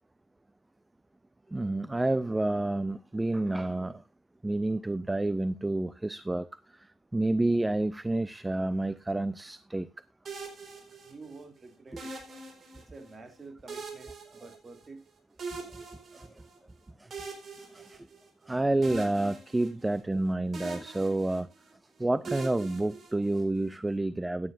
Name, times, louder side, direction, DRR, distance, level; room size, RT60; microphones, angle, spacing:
voice 1, 1.5-4.0 4.4-6.5 7.1-9.9 11.9-12.0 16.1-16.3 17.7-18.1 18.5-21.5 22.0-24.5, right 2 dB, 15° right, 0.5 m, -29 dB
sound 1, 10.3-11.4 12.0-13.1 13.7-15.0 15.4-16.6 17.1-18.5 18.8-20.2 20.5-21.7 22.3-23.6, right 3 dB, 50° right, 4.2 m, -43 dB
voice 2, 11.0-12.2 12.7-15.0, right 3 dB, 30° right, 2.7 m, -49 dB
15.5 x 9.5 x 2.6 m
cardioid pair, 90°, 0 cm